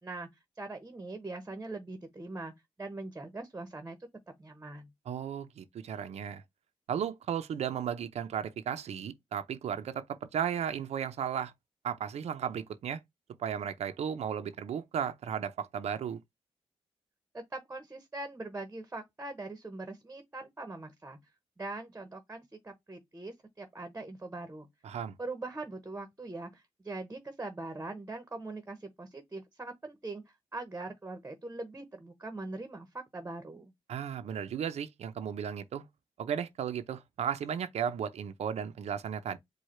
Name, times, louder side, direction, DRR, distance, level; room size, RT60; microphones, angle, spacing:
voice 1, 0.6-2.5 2.8-4.0 4.4-4.9 17.3-21.2 21.6-24.7 25.2-30.2 30.5-33.7, right 2 dB, 20° right, 1.0 m, -42 dB
voice 2, 5.1-6.4 6.9-10.0 10.3-11.5 11.8-13.0 13.4-16.2 24.8-25.2 33.9-35.9 36.2-39.4, right 8 dB, 80° right, 0.6 m, -35 dB
4.8 x 2.3 x 4.3 m
wide cardioid pair, 125°, 11 cm